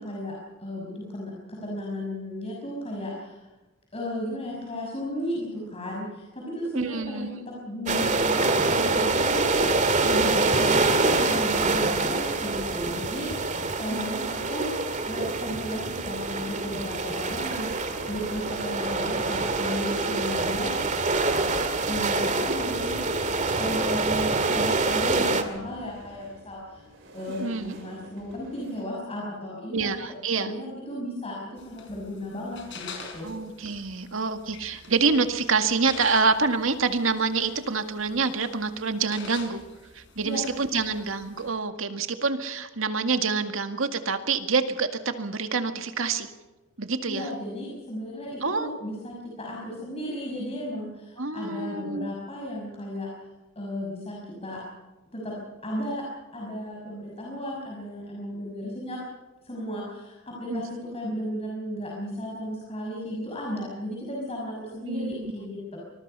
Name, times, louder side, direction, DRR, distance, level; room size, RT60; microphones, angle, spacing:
voice 1, 0.0-3.4 3.9-9.7 10.0-14.7 15.1-20.7 21.9-26.8 27.1-29.9 30.4-31.3 31.6-33.3 40.2-40.4 47.1-53.1 53.6-54.6 55.1-55.3 55.6-56.0 56.3-59.0 59.4-60.7 60.9-65.8, equal, 30° left, -3 dB, 5.8 m, -34 dB
voice 2, 6.7-7.3 13.9-14.3 27.4-27.8 29.7-30.5 33.2-39.6 39.9-46.3 46.8-47.3 48.4-48.7 51.2-52.1 60.5-60.6 64.9-65.3, right 4 dB, 85° right, 7 dB, 1.9 m, -27 dB
sound 1, 7.9-25.4, right 3 dB, 40° right, 2.1 m, -25 dB
sound 2, 16.0-28.8, right 1 dB, 70° right, 6.6 m, -46 dB
sound 3, 31.6-41.5, left 4 dB, 65° left, 4.7 m, -46 dB
24.5 x 21.0 x 5.5 m, 1.1 s
head